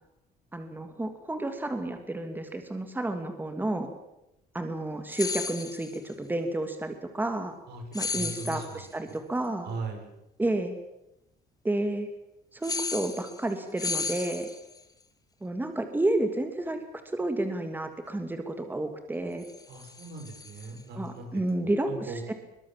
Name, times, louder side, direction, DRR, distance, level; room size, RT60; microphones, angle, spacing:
voice 1, 0.5-3.9 4.5-7.5 7.9-9.7 10.4-10.7 11.6-12.1 12.5-14.5 15.4-16.8 17.1-19.5 20.9-22.3, right 1 dB, 10° right, 6 dB, 2.6 m, -31 dB
sound 1, 5.1-6.0 7.9-8.9 12.6-13.5 13.8-14.8 19.4-20.8, left 4 dB, 20° left, 2.0 m, -34 dB
voice 2, 8.1-9.2 9.6-10.0 19.7-21.3 21.6-22.3, right 3 dB, 75° right, 4 dB, 6.4 m, -39 dB
23.0 x 21.0 x 7.5 m, 0.87 s
cardioid pair, 110°, 17 cm